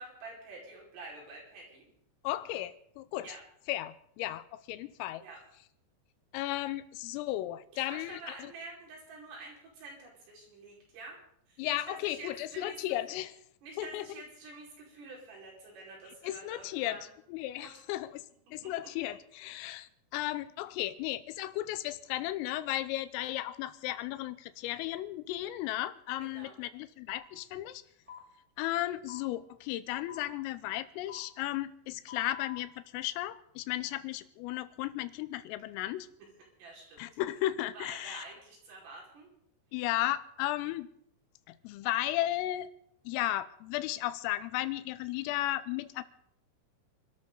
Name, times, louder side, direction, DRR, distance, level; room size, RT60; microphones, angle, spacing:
voice 1, 0.0-1.9 3.2-3.4 5.2-5.4 7.7-11.2 11.5-12.8 13.6-17.1 17.6-17.7 18.6-18.7 19.0-19.1 26.2-26.6 36.6-37.1 37.7-39.3, right 3 dB, 75° right, -3 dB, 7.4 m, -48 dB
voice 2, 2.3-3.4 3.7-5.2 6.3-8.5 11.6-13.3 13.8-14.1 16.1-18.3 18.5-27.8 28.6-36.1 37.0-38.3 39.7-40.9 41.5-42.7 43.1-46.0, left 15 dB, 85° left, 14 dB, 3.4 m, -35 dB
sound 1, 27.1-27.2 28.1-28.2 29.1-29.2 30.1-30.2 31.1-31.2 32.1-32.6, left 9 dB, 45° right, 0.4 m, -46 dB
27.5 x 13.0 x 3.9 m, 0.71 s
omnidirectional pair, 5.9 m